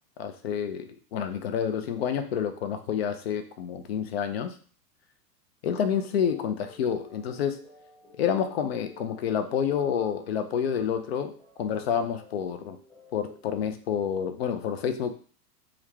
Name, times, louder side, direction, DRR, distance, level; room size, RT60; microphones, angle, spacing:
voice 1, 0.2-4.5 5.6-7.6 8.2-12.8 13.1-15.1, left 8 dB, 40° left, 8 dB, 0.4 m, -29 dB
sound 1, 6.0-13.7, left 1 dB, 10° left, 1.2 m, -55 dB
3.2 x 2.5 x 3.0 m, 0.41 s
figure-of-eight pair, 100°, 49 cm